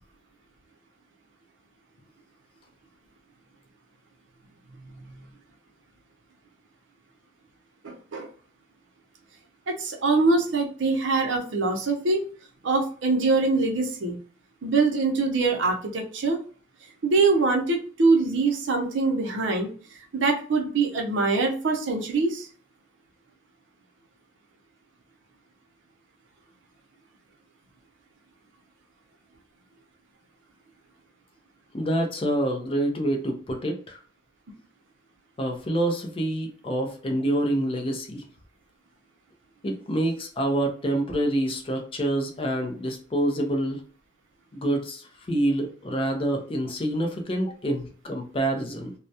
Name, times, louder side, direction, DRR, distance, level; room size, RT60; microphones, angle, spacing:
voice 1, 7.8-8.3 9.7-12.2 12.6-14.2 14.6-16.4 17.0-19.7 20.1-22.5, right 3 dB, 70° right, 1 dB, 0.6 m, -23 dB
voice 2, 31.7-34.0 35.4-38.2 39.6-43.8 44.5-48.9, right 1 dB, 30° left, 3 dB, 0.4 m, -27 dB
2.2 x 2.1 x 2.6 m, 0.42 s
head